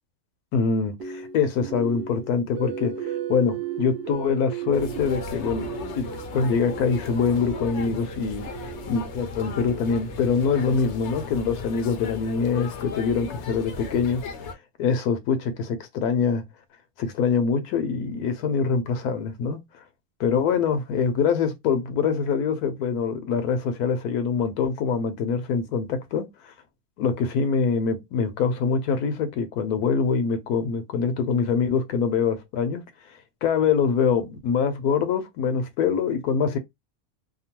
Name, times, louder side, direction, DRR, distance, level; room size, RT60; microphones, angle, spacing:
voice 1, 0.5-2.9 3.3-14.2 14.8-16.4 17.0-19.6 20.2-26.5 27.0-32.8 33.4-36.6, left 6 dB, 80° left, 1.1 m, -24 dB
sound 1, 1.0-11.1, right 8 dB, 70° right, 0.6 m, -36 dB
sound 2, 4.7-14.5, left 4 dB, 65° left, 0.7 m, -36 dB
2.8 x 2.2 x 2.8 m
omnidirectional pair, 1.6 m